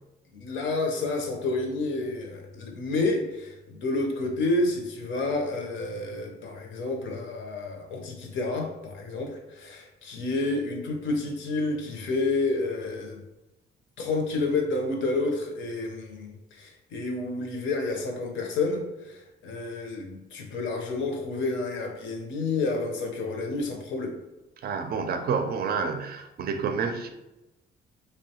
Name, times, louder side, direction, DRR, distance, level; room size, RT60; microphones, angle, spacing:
voice 1, 0.3-13.2 14.0-24.2, left 2 dB, 75° left, 2 dB, 0.6 m, -29 dB
voice 2, 24.6-27.1, right 5 dB, 50° right, 7 dB, 0.4 m, -29 dB
2.7 x 2.2 x 2.8 m, 0.97 s
cardioid pair, 90°, 20 cm